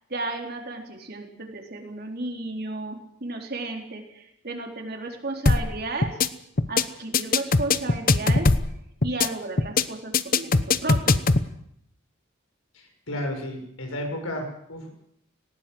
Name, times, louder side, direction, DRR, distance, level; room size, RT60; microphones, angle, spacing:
voice 1, 0.1-6.2 6.7-8.5 9.0-11.2, right 2 dB, 50° right, 2 dB, 3.9 m, -33 dB
sound 1, 5.5-5.7 6.0-6.3 6.6-6.8 7.1-8.7 9.0-9.3 9.6-9.8 10.1-11.4, left 3 dB, 45° left, 0.9 m, -20 dB
voice 2, 12.7-14.9, left 1 dB, 90° left, 3 dB, 6.0 m, -33 dB
19.0 x 18.0 x 7.8 m, 0.74 s
head